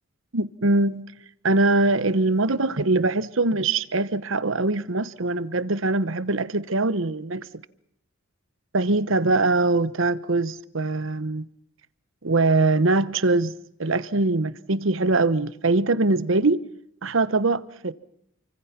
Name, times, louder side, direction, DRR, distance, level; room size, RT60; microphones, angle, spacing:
voice 1, 0.3-1.1 1.4-7.5 8.7-11.4 12.2-13.5 13.8-16.6 17.0-17.9, right 2 dB, 65° right, 1.0 m, -22 dB
28.5 x 25.0 x 5.9 m
head